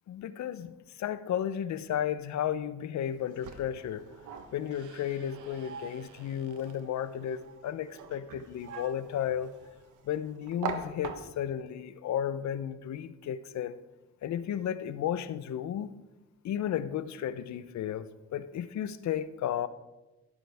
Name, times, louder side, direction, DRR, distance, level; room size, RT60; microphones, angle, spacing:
voice 1, 0.1-4.1 4.5-9.5 10.0-13.8 14.2-15.9 16.4-19.7, left 10 dB, 65° left, 14 dB, 0.8 m, -33 dB
sound 1, 3.1-11.6, right 6 dB, 80° right, 1.2 m, -44 dB
13.5 x 12.0 x 3.5 m, 1.1 s
cardioid pair, 90°, 30 cm